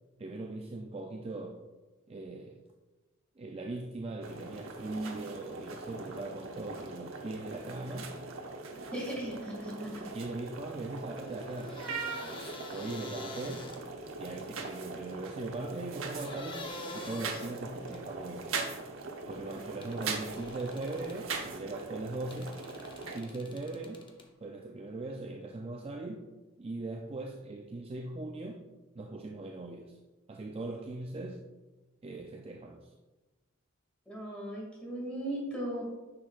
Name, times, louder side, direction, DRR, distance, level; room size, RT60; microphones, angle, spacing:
voice 1, 0.2-1.7 2.1-2.6 3.4-8.1 10.1-11.9 12.7-13.8 14.2-18.5 19.3-22.6 23.1-24.0 24.4-26.3 26.6-28.6 28.9-30.0 30.3-31.5 32.0-32.9, right 2 dB, 30° right, 0.4 m, -40 dB
sound 1, 4.2-23.2, right 4 dB, 75° right, 0.9 m, -41 dB
voice 2, 8.9-10.0 34.1-35.8, right 1 dB, 5° left, 2.3 m, -37 dB
sound 2, 11.2-14.2 16.1-18.1 19.8-21.2 22.3-24.3, left 2 dB, 25° left, 0.8 m, -46 dB
9.5 x 6.2 x 2.4 m
head